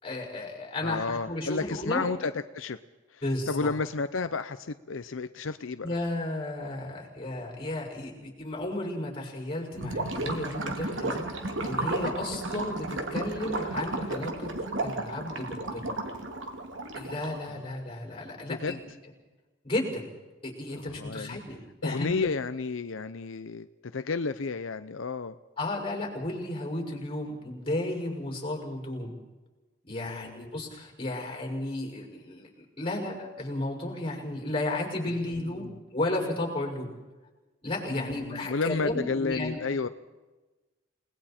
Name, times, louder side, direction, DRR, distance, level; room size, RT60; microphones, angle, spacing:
voice 1, 0.0-2.0 3.2-3.7 5.8-14.5 14.8-15.9 16.9-18.8 19.6-20.0 20.4-22.3 25.6-29.1 29.9-36.9 37.6-39.6, left 1 dB, 30° left, 1 dB, 6.1 m, -33 dB
voice 2, 0.8-2.8 3.1-3.2 3.5-5.9 17.5-17.6 18.6-18.8 20.7-21.4 21.8-23.7 23.9-25.4 29.9-30.5 35.6-35.8 37.9-39.9, left 4 dB, 85° left, 10 dB, 0.7 m, -32 dB
Gurgling / Liquid, 9.7-17.5, right 2 dB, 70° right, 2.6 m, -33 dB
29.5 x 20.0 x 4.4 m, 1.2 s
head